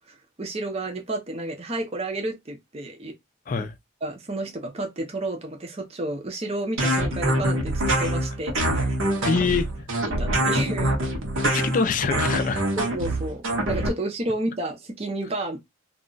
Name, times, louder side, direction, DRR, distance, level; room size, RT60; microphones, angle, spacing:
voice 1, 0.1-3.1 3.6-3.7 4.0-8.9 9.2-9.5 10.2-10.9 12.8-15.6, right 2 dB, 30° right, 0.5 m, -31 dB
sound 1, 6.8-13.9, right 1 dB, 70° right, 0.8 m, -24 dB
voice 2, 9.2-9.6 11.4-12.7, left 5 dB, 40° left, 0.3 m, -24 dB
2.4 x 2.0 x 3.7 m
head